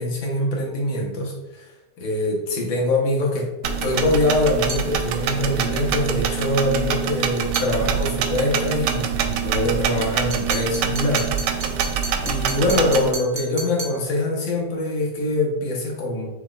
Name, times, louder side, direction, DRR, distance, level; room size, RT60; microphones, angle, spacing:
voice 1, 0.0-3.5 3.8-11.3 11.8-16.3, left 1 dB, 85° left, -2 dB, 1.8 m, -23 dB
sound 1, 3.6-13.1, right 7 dB, 75° right, 1.1 m, -25 dB
sound 2, 4.7-4.9 7.5-7.7 10.3-14.0, right 3 dB, 35° right, 1.1 m, -33 dB
6.4 x 3.4 x 2.4 m, 1.0 s
omnidirectional pair, 2.0 m